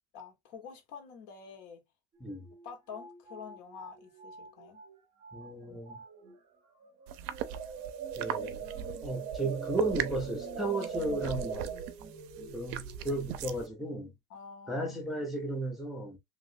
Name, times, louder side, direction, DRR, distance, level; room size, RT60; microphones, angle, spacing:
voice 1, 0.1-1.8 2.6-4.8 14.3-15.0, left 6 dB, 65° left, 1.4 m, -47 dB
sound 1, 2.1-2.2 2.4-5.0 5.2-5.5 5.9-6.4 6.8-13.7, right 6 dB, 35° right, 0.9 m, -42 dB
voice 2, 5.3-6.0 8.2-8.7 9.0-11.7 12.5-14.1 14.7-16.2, right 2 dB, ahead, 0.7 m, -34 dB
sound 2, 7.1-13.7, right 10 dB, 60° right, 0.5 m, -40 dB
3.0 x 2.9 x 2.6 m
cardioid pair, 170°, 20 cm